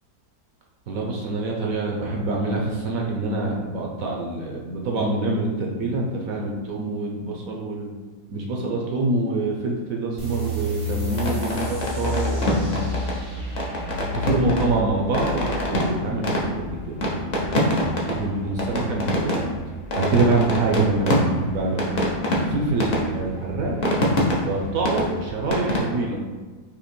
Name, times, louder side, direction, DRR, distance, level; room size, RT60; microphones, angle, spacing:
voice 1, 0.9-7.9 8.3-12.9 14.0-17.3 17.7-19.5 20.0-21.9 22.4-23.7 24.4-26.2, right 2 dB, 65° right, -1 dB, 0.9 m, -26 dB
sound 1, 10.2-17.3, left 1 dB, 25° right, 0.5 m, -31 dB
sound 2, 11.1-25.8, left 1 dB, 70° left, 0.4 m, -26 dB
4.1 x 2.8 x 4.4 m, 1.4 s
omnidirectional pair, 2.0 m